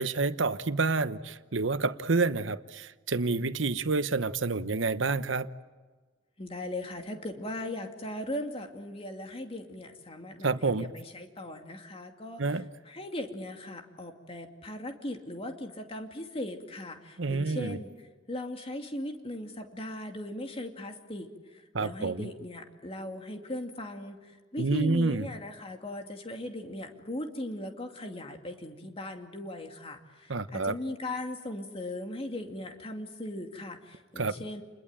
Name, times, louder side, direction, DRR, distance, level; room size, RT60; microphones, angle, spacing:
voice 1, 0.0-5.5 10.4-10.9 12.4-12.6 17.2-17.8 21.7-22.3 24.6-25.3 30.3-30.7 34.2-34.3, right 3 dB, 85° right, 12 dB, 1.0 m, -28 dB
voice 2, 6.4-17.9 18.3-34.6, left 1 dB, 30° left, 4 dB, 2.5 m, -38 dB
29.5 x 21.5 x 9.0 m, 1.4 s
head